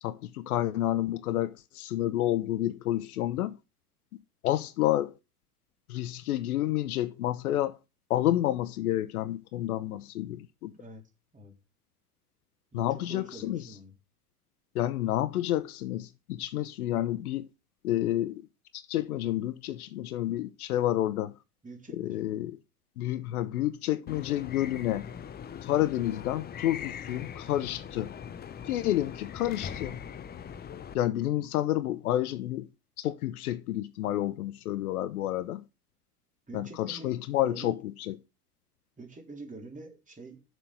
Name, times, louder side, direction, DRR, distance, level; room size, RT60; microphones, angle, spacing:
voice 1, 0.0-3.6 4.4-5.1 5.9-7.8 8.1-10.7 12.7-13.6 14.7-17.5 17.8-18.5 18.7-21.3 21.9-22.6 23.0-25.1 25.6-28.1 28.7-30.0 30.9-32.7 33.0-35.6 36.5-37.8 38.1-38.2, left 13 dB, 70° left, 1.0 m, -29 dB
voice 2, 12.7-13.9 21.6-22.6 36.5-37.2 37.4-37.8 39.0-40.4, right 2 dB, 15° right, 3.7 m, -46 dB
sound 1, 24.1-30.9, left 8 dB, 20° left, 0.8 m, -41 dB
7.0 x 6.4 x 7.7 m
figure-of-eight pair, 85°, 46 cm